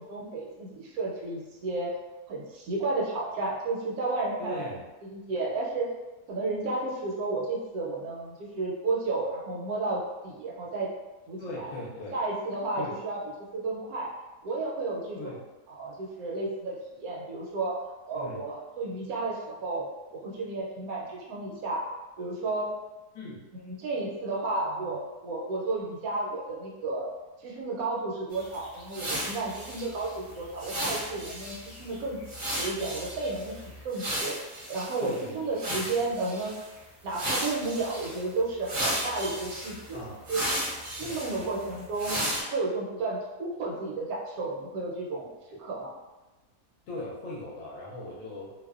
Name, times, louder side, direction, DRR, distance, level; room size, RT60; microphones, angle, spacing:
voice 1, 0.0-1.9 2.3-4.6 5.0-5.9 6.3-10.9 11.3-11.7 12.1-13.2 13.5-14.1 14.4-15.3 15.7-17.8 18.1-19.9 20.1-21.8 22.2-22.7 23.6-27.1 27.4-32.2 32.5-34.3 34.7-36.6 37.0-40.0 40.3-40.4 41.0-46.0, right 3 dB, 75° right, -3 dB, 1.0 m, -32 dB
voice 2, 4.4-4.8 11.4-12.2 12.8-13.0 15.2-15.4 18.1-18.5 23.1-23.5 35.0-35.6 36.0-36.2 39.9-40.2 40.9-41.5 46.9-48.5, left 2 dB, 65° left, -5 dB, 0.9 m, -39 dB
sound 1, 28.3-35.2 35.6-36.7 37.1-38.2 38.6-42.4, right 1 dB, 45° right, 0.7 m, -35 dB
2.6 x 2.1 x 2.3 m, 1.1 s
omnidirectional pair, 1.6 m